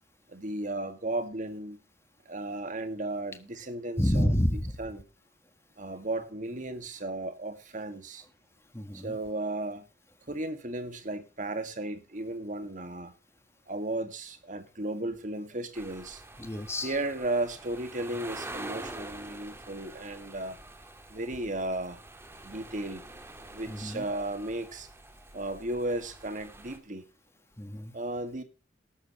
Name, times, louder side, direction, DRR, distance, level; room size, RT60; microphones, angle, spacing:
voice 1, 0.3-1.8 2.3-4.3 4.8-5.0 5.8-8.2 8.9-9.9 10.3-13.2 13.7-16.2 16.8-20.6 21.1-22.0 22.4-23.0 23.5-24.9 25.3-27.1 27.9-28.4, right 2 dB, 45° right, 8 dB, 1.9 m, -35 dB
voice 2, 4.0-4.8 8.7-9.2 16.4-17.0 23.7-24.1 27.6-27.9, equal, 15° left, 10 dB, 1.4 m, -29 dB
sound 1, 15.7-26.8, right 2 dB, 15° right, 1.7 m, -46 dB
14.0 x 12.5 x 3.1 m, 0.30 s
head